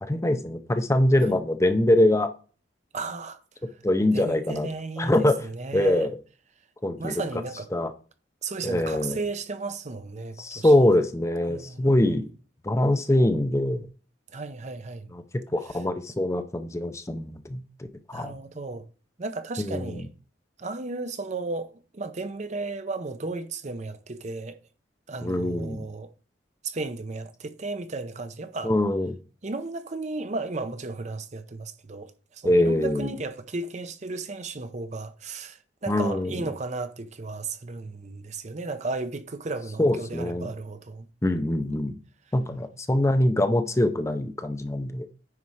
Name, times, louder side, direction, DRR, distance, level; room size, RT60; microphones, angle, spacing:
voice 1, 0.0-2.3 3.8-4.7 5.0-5.4 5.7-6.1 6.8-7.1 7.7-7.9 8.6-9.2 10.4-12.3 12.6-13.9 15.1-18.3 19.6-20.0 25.2-25.9 28.6-29.2 32.4-33.1 35.9-36.3 39.8-40.5 41.2-41.9 42.3-45.1, left 1 dB, 15° left, 0.6 m, -23 dB
voice 2, 2.9-3.4 4.1-6.1 7.0-7.7 8.4-10.7 11.5-12.2 14.3-15.1 18.1-18.9 19.2-20.1 20.6-24.6 25.1-26.1 26.6-28.7 29.4-41.1, right 3 dB, 40° right, 0.7 m, -34 dB
9.6 x 4.3 x 4.8 m
head